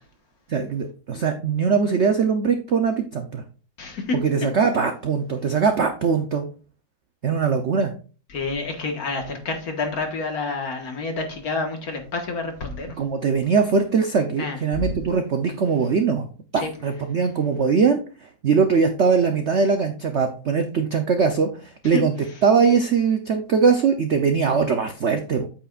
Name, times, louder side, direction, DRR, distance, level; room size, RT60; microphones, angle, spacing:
voice 1, 0.5-3.4 4.2-6.5 7.2-7.9 13.0-16.3 16.5-22.1 22.4-25.5, right 5 dB, 80° right, 6 dB, 0.6 m, -21 dB
voice 2, 3.8-4.2 8.3-13.0 14.4-14.9 16.6-16.7 21.9-22.0, left 3 dB, 50° left, 4 dB, 1.8 m, -28 dB
8.7 x 8.2 x 2.4 m, 0.37 s
omnidirectional pair, 2.2 m